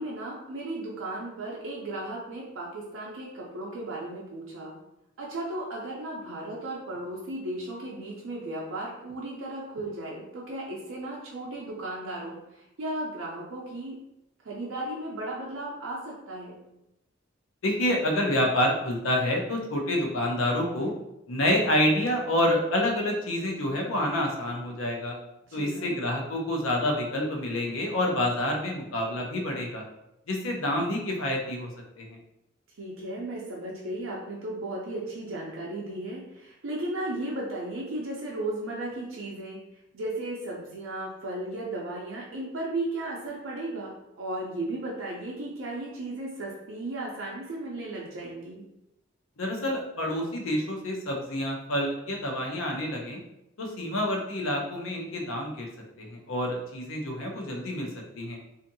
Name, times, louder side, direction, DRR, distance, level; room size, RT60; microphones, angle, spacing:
voice 1, 0.0-4.7 5.2-14.0 14.4-16.6 25.5-26.0 32.8-39.6 39.9-43.9 44.2-48.6, right 1 dB, 80° right, -4 dB, 0.5 m, -35 dB
voice 2, 17.6-20.9 21.3-25.2 25.5-29.8 30.3-31.7 32.0-32.2 49.4-53.2 53.6-55.7 56.0-57.9 58.1-58.4, left 1 dB, 85° left, 1 dB, 0.6 m, -28 dB
2.6 x 2.5 x 2.6 m, 0.87 s
head